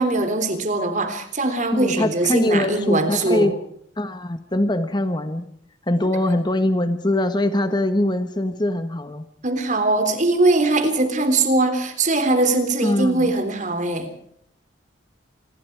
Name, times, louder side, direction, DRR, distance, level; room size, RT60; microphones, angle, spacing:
voice 1, 0.0-3.5 9.4-14.1, right 2 dB, 40° right, 8 dB, 3.5 m, -21 dB
voice 2, 1.7-3.6 4.0-5.4 5.9-9.2 12.8-13.3, left 1 dB, 25° left, 9 dB, 1.3 m, -22 dB
27.0 x 21.5 x 4.7 m, 0.68 s
head